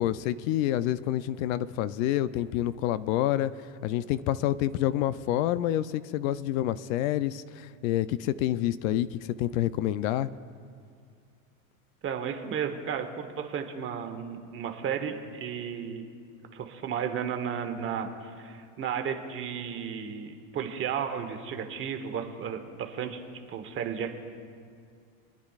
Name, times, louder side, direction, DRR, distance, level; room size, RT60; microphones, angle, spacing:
voice 1, 0.0-3.5 3.8-10.3, left 13 dB, 70° left, 15 dB, 0.6 m, -28 dB
voice 2, 12.0-16.0 16.5-23.2 23.5-24.1, right 7 dB, 30° right, 6 dB, 1.0 m, -33 dB
28.0 x 9.7 x 2.4 m, 2.2 s
supercardioid pair, 145°, 42 cm